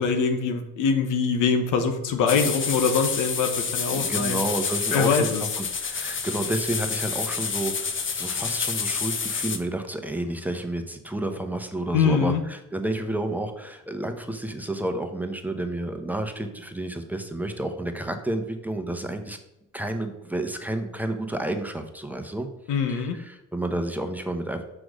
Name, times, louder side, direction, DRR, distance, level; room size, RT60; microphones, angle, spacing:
voice 1, 0.0-4.4 4.9-5.4 11.9-12.4 22.7-23.2, left 5 dB, 90° left, 6 dB, 1.1 m, -23 dB
sound 1, 2.3-9.6, left 5 dB, 40° left, 1.0 m, -29 dB
voice 2, 3.9-19.4 19.7-22.5 22.9-24.6, right 1 dB, 5° right, 5 dB, 1.0 m, -30 dB
6.1 x 4.9 x 6.3 m, 0.90 s
cardioid pair, 90°, 30 cm